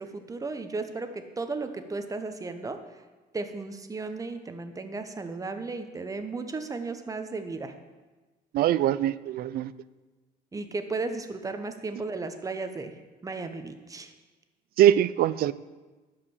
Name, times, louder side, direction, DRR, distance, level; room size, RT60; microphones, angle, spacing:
voice 1, 0.0-2.8 3.3-7.7 10.5-12.9 13.2-14.1, right 3 dB, 20° right, 7 dB, 1.0 m, -35 dB
voice 2, 8.5-9.7 14.8-15.5, right 11 dB, 65° right, 17 dB, 0.4 m, -22 dB
12.5 x 5.1 x 7.1 m, 1.2 s
cardioid pair, 110°, 17 cm